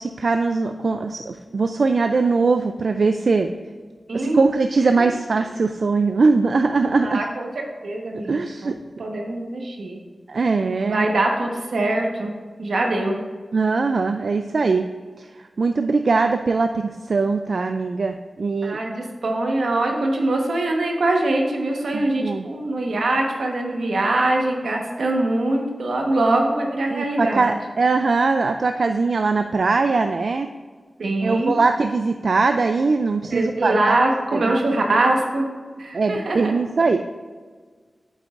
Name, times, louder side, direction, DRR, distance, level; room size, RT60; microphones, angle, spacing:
voice 1, 0.0-3.5 4.1-7.2 8.3-8.8 10.3-11.1 13.5-14.9 15.2-18.8 21.9-22.4 26.9-30.5 31.2-34.0 34.3-34.6 35.9-37.1, right 4 dB, 70° right, 7 dB, 0.3 m, -21 dB
voice 2, 4.1-4.4 5.0-5.1 6.9-7.5 7.8-8.7 9.0-10.0 10.8-12.3 12.6-13.2 18.6-27.6 31.0-31.6 33.2-35.5 35.7-36.5, right 2 dB, 90° right, 1 dB, 1.2 m, -23 dB
8.5 x 8.0 x 2.5 m, 1.5 s
wide cardioid pair, 65°, 0 cm